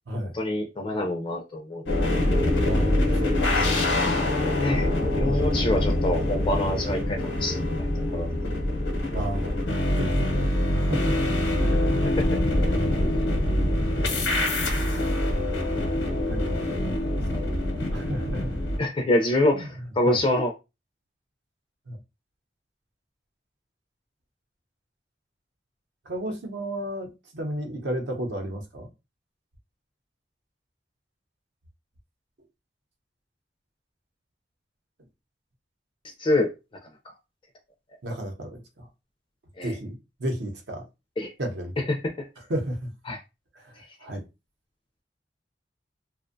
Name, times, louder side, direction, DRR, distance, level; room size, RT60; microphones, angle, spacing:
voice 1, 0.3-1.8 2.1-2.2 3.9-4.2 4.6-4.9 5.1-8.3 12.2-12.3 18.8-20.5 36.2-36.5 39.6-39.7 41.2-41.3 42.2-42.3 43.1-43.2, left 1 dB, 30° left, 0.3 m, -26 dB
sound 1, 1.9-18.8, left 1 dB, 85° left, 0.7 m, -25 dB
voice 2, 2.6-3.9 5.2-5.7 6.6-6.8 9.1-9.7 10.0-12.2 12.6-13.2 13.6-14.2 14.5-14.7 15.4-15.6 16.3-17.4 17.9-18.6 19.5-20.2 21.9-22.0 26.1-28.9 38.0-38.9 39.6-40.9 41.4-41.8 42.4-42.9 43.6-44.2, right 1 dB, 70° right, 0.7 m, -34 dB
2.5 x 2.1 x 2.5 m
head